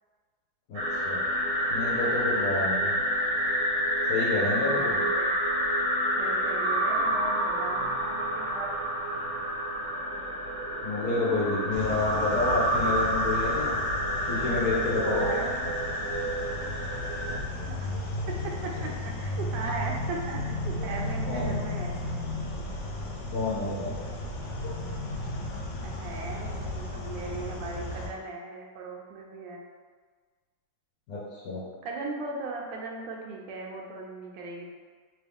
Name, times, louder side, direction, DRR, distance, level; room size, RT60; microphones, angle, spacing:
voice 1, 0.7-1.2 1.7-3.0 4.1-5.0 10.8-13.7 14.3-15.3 21.3-21.6 23.3-23.9 31.1-31.6, left 3 dB, 65° left, -6 dB, 1.0 m, -29 dB
sound 1, 0.7-17.4, equal, 60° right, 1.1 m, -28 dB
voice 2, 4.7-5.4 6.2-8.7 15.0-15.5 17.5-17.9 18.6-22.0 25.8-29.6 31.8-34.7, right 3 dB, 80° right, -1 dB, 1.3 m, -38 dB
sound 2, 11.7-28.1, left 1 dB, 80° left, 1.2 m, -34 dB
3.0 x 2.7 x 3.4 m, 1.5 s
omnidirectional pair, 2.0 m